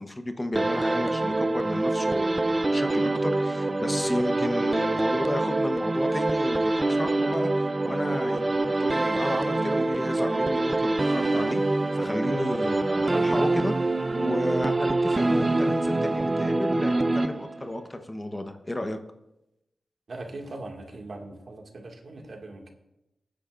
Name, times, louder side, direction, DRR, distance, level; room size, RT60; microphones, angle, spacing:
voice 1, 0.0-11.6 11.9-19.0, left 1 dB, 20° left, 6 dB, 1.1 m, -33 dB
sound 1, 0.6-17.8, right 2 dB, 30° right, 0.5 m, -25 dB
voice 2, 20.1-22.7, right 2 dB, 65° right, 1 dB, 2.1 m, -40 dB
23.0 x 10.0 x 2.6 m, 0.91 s
wide cardioid pair, 75°, 0 cm